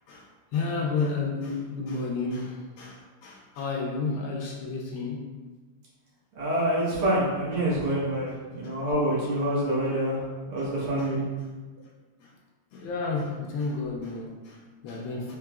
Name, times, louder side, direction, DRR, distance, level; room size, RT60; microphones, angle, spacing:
voice 1, 0.1-5.3 8.6-8.8 10.6-10.7 11.0-11.1 11.4-11.5 12.2-12.3 12.7-15.4, left 4 dB, 75° left, -1 dB, 1.3 m, -32 dB
voice 2, 6.4-10.2 10.5-11.2, right 1 dB, 80° right, -8 dB, 2.2 m, -26 dB
4.7 x 3.4 x 2.3 m, 1.3 s
omnidirectional pair, 2.4 m